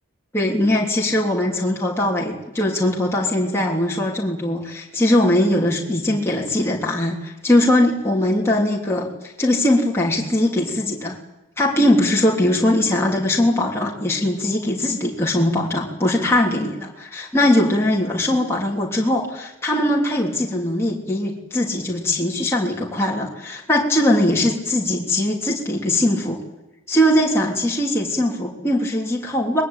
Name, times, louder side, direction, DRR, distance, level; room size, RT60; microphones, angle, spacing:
voice 1, 0.3-9.1 9.4-11.2 11.6-26.4 26.9-29.6, left 1 dB, 10° left, -3 dB, 3.3 m, -20 dB
23.5 x 21.0 x 9.1 m, 1.0 s
head